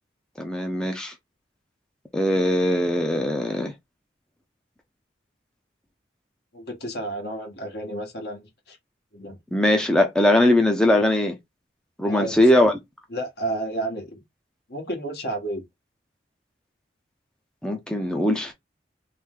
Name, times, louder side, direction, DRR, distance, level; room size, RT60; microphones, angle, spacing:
voice 1, 0.4-1.1 2.1-3.7 9.5-11.3 12.0-12.7 17.6-18.5, left 1 dB, 5° left, 0.6 m, -20 dB
voice 2, 6.5-8.8 9.1-9.4 12.0-12.4 13.1-14.2 14.7-15.6, right 1 dB, 60° left, 1.4 m, -31 dB
3.2 x 3.2 x 3.6 m
head